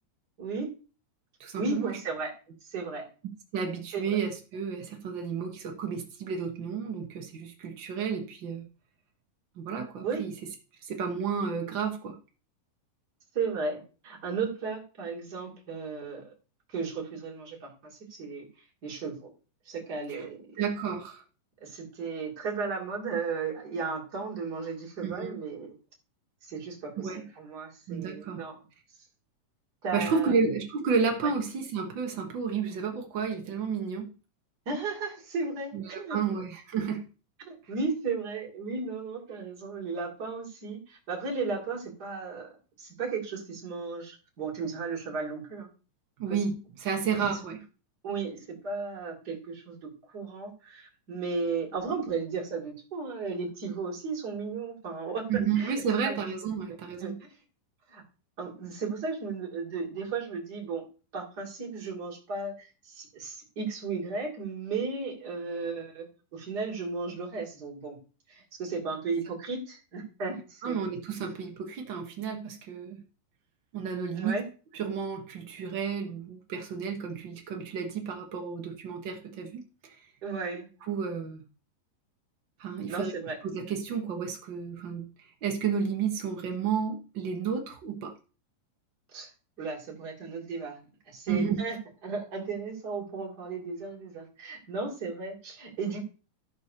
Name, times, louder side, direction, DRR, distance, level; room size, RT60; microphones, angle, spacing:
voice 1, 0.4-0.7 1.6-2.3 2.6-3.1 3.9-4.2 10.0-10.2 13.3-16.3 16.7-18.5 18.8-19.3 19.6-20.4 21.6-25.7 26.4-28.6 29.8-30.3 31.2-31.3 34.7-36.3 37.4-42.5 42.8-45.7 47.1-47.2 48.0-55.3 55.5-56.2 57.0-57.3 57.9-58.0 58.4-60.8 61.1-68.0 68.3-70.8 74.1-74.4 80.2-80.7 82.9-83.4 89.1-89.3 89.6-90.8 91.1-91.8 92.0-96.0, right 4 dB, 30° right, -1 dB, 2.8 m, -35 dB
voice 2, 1.4-2.0 3.5-8.6 9.6-10.3 10.8-12.2 20.1-20.2 20.6-21.2 25.0-25.4 27.0-27.2 27.9-28.4 29.9-34.1 35.7-37.0 46.2-47.6 55.3-57.2 70.6-73.0 73.7-74.4 74.7-79.9 80.8-81.4 82.6-83.1 83.4-88.1 91.3-91.6, right 6 dB, 85° right, 3 dB, 1.0 m, -31 dB
12.0 x 4.2 x 6.6 m, 0.35 s
omnidirectional pair, 4.0 m